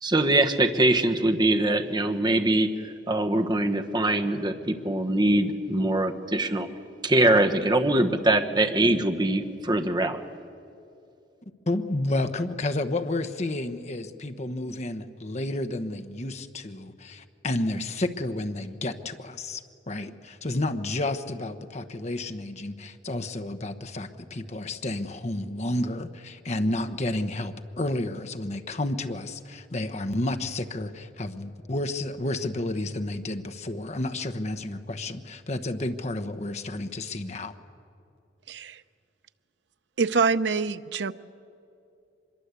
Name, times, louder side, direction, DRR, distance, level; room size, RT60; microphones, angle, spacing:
voice 1, 0.0-6.7 7.0-10.2, right 1 dB, 25° right, 6 dB, 1.3 m, -23 dB
voice 2, 11.7-37.5, left 2 dB, 40° left, 8 dB, 1.0 m, -31 dB
voice 3, 38.5-38.8 40.0-41.1, right 5 dB, 85° right, 12 dB, 0.7 m, -25 dB
25.0 x 22.0 x 8.3 m, 2.6 s
head